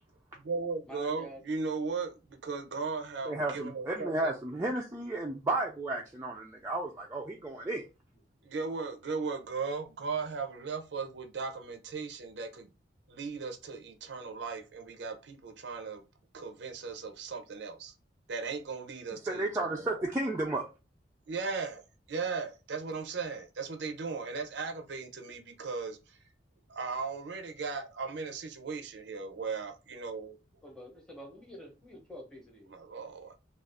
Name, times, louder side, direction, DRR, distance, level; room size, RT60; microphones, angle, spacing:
voice 1, 0.4-4.4 8.4-12.7 13.1-16.0 16.3-17.9 18.3-20.1 21.3-26.2 26.7-30.4 32.7-33.3, right 4 dB, 75° right, 0.5 m, -37 dB
voice 2, 0.9-1.4 30.6-32.7, equal, 5° left, 0.8 m, -47 dB
voice 3, 3.3-7.8 19.3-20.7, right 2 dB, 15° right, 0.3 m, -33 dB
2.4 x 2.3 x 3.4 m
head